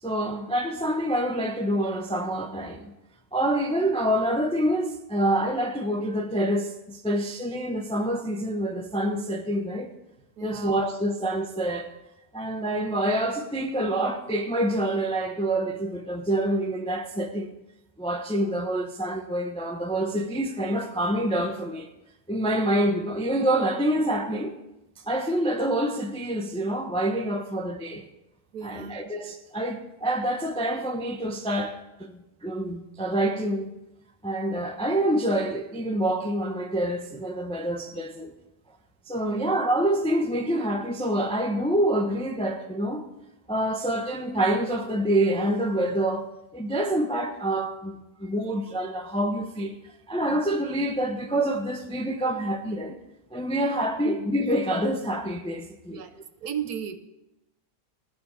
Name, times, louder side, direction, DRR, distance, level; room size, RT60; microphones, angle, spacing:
voice 1, 0.0-2.9 3.3-9.9 10.4-11.9 12.3-17.5 18.0-21.9 22.3-24.6 25.0-28.1 28.6-33.7 34.2-38.3 39.1-43.1 43.5-46.3 46.5-49.8 50.1-53.0 53.3-56.0, right 1 dB, 10° left, 0.4 m, -27 dB
voice 2, 10.4-10.9 28.5-29.0 39.2-39.5 54.0-54.3 55.9-56.1 56.4-57.0, right 7 dB, 65° right, 1.2 m, -35 dB
14.5 x 5.2 x 8.4 m
omnidirectional pair, 1.9 m